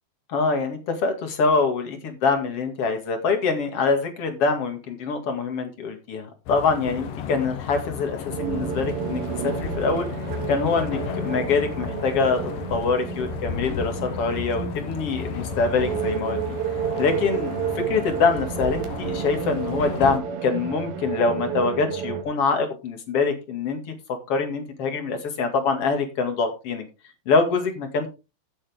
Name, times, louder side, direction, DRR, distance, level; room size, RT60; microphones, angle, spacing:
voice 1, 0.3-10.1 10.5-16.4 17.0-23.9 24.3-26.8 27.3-28.1, left 4 dB, 45° left, 6 dB, 2.7 m, -24 dB
sound 1, 6.5-20.2, left 7 dB, 65° left, 2.9 m, -34 dB
sound 2, 8.3-22.2, right 8 dB, 70° right, 3.3 m, -31 dB
15.5 x 7.2 x 3.6 m, 0.29 s
omnidirectional pair, 4.4 m